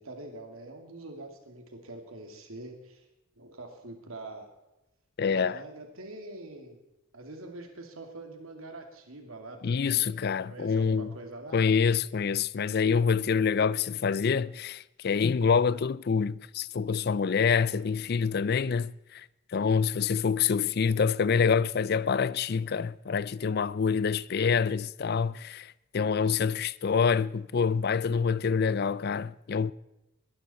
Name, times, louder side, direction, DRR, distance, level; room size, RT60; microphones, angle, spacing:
voice 1, 0.0-3.0 3.4-4.5 5.3-6.8 7.1-10.1 10.5-11.6, right 2 dB, 80° right, 2.5 m, -44 dB
voice 2, 5.2-5.6 9.6-11.1 11.5-19.3 19.5-29.7, left 6 dB, 50° left, 0.4 m, -26 dB
21.0 x 12.5 x 4.3 m
head